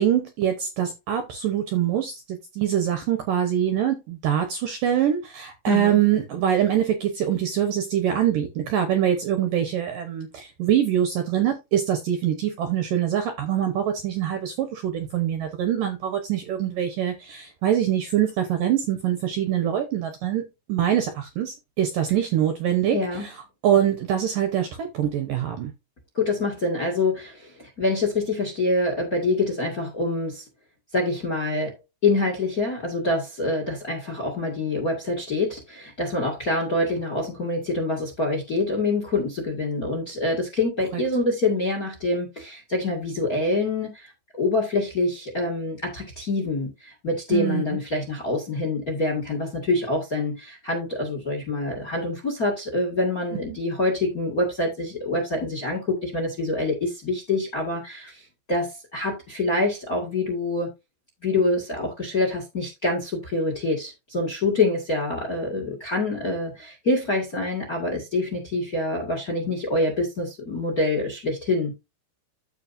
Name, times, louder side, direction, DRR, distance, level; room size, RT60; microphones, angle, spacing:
voice 1, 0.0-20.4 20.7-23.4 23.6-25.7 47.3-47.8, right 10 dB, 75° right, 2.1 m, -24 dB
voice 2, 5.7-6.0 22.9-23.3 26.1-30.4 30.9-31.8 32.0-60.7 61.2-71.7, left 2 dB, 35° left, 1.4 m, -26 dB
14.0 x 5.0 x 2.6 m
omnidirectional pair, 5.1 m